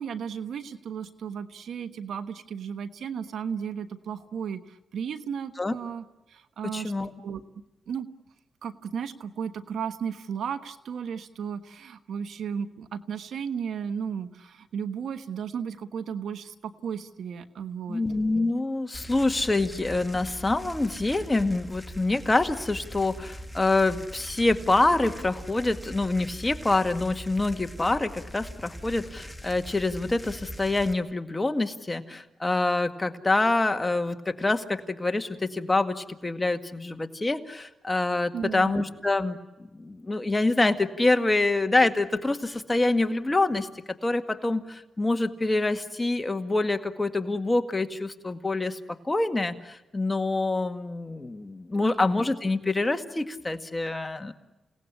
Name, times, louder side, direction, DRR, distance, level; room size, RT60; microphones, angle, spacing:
voice 1, 0.0-6.9 7.2-7.4 7.9-8.1 8.6-18.0 38.3-38.8 51.8-52.0, right 7 dB, 80° right, 11 dB, 1.3 m, -34 dB
voice 2, 6.7-7.1 17.9-39.4 39.7-43.7 44.0-48.8 49.0-54.3, left 2 dB, 20° left, 7 dB, 1.9 m, -26 dB
sound 1, 18.9-30.9, equal, 5° left, 2.0 m, -42 dB
29.0 x 18.5 x 9.9 m, 1.0 s
cardioid pair, 65°, 0 cm